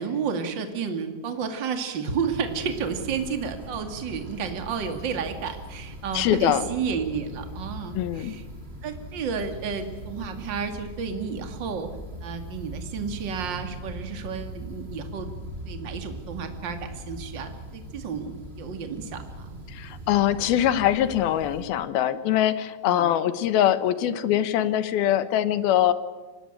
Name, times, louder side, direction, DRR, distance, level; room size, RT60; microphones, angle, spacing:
voice 1, 0.0-8.4 8.8-11.9 12.2-15.3 15.6-19.6 22.9-23.1, right 6 dB, 35° right, 6 dB, 2.5 m, -31 dB
sound 1, 2.3-21.7, equal, 20° right, 2.5 m, -40 dB
voice 2, 6.1-6.6 7.9-8.4 19.7-25.9, left 11 dB, 85° left, 13 dB, 3.1 m, -23 dB
25.0 x 19.5 x 9.0 m, 1.3 s
omnidirectional pair, 4.2 m